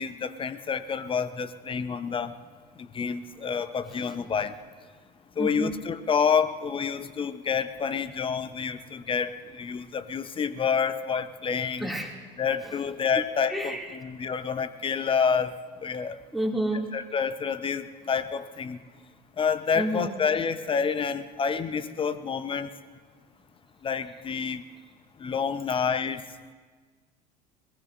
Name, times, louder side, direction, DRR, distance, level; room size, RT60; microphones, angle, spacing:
voice 1, 0.0-2.3 2.9-4.5 5.4-11.9 12.4-16.2 16.9-18.8 19.4-22.7 23.8-24.6 25.2-26.2, left 6 dB, 25° left, 13 dB, 0.8 m, -28 dB
voice 2, 3.9-4.3 5.4-5.7 11.8-12.1 13.5-13.9 16.3-16.9 19.7-20.1, right 1 dB, ahead, -1 dB, 2.4 m, -30 dB
21.5 x 20.5 x 2.6 m, 1.5 s
figure-of-eight pair, 70°, 21 cm